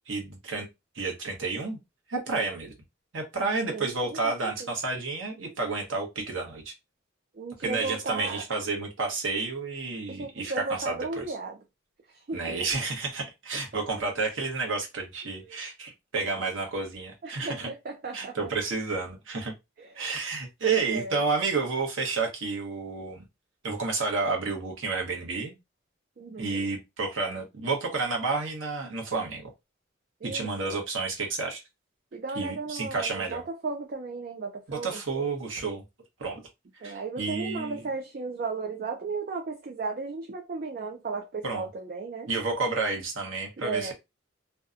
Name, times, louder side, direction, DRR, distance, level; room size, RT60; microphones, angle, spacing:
voice 1, 0.1-0.7 0.9-1.8 2.1-2.7 3.1-6.7 7.6-11.3 12.3-17.7 18.1-19.5 20.0-23.2 23.6-25.6 26.4-29.5 30.2-31.6 32.3-33.4 34.7-35.8 36.2-36.4 36.8-37.8 41.4-41.7 42.3-43.9, right 3 dB, 80° right, 0.9 m, -30 dB
voice 2, 3.7-4.7 7.3-8.4 10.1-11.6 12.1-12.6 13.7-13.8 15.4-15.6 17.2-18.4 19.8-20.1 20.6-21.2 26.2-26.7 27.2-27.4 30.2-30.8 32.1-35.0 36.8-42.3 43.6-43.9, right 4 dB, 45° right, 0.4 m, -35 dB
2.7 x 2.2 x 2.4 m
head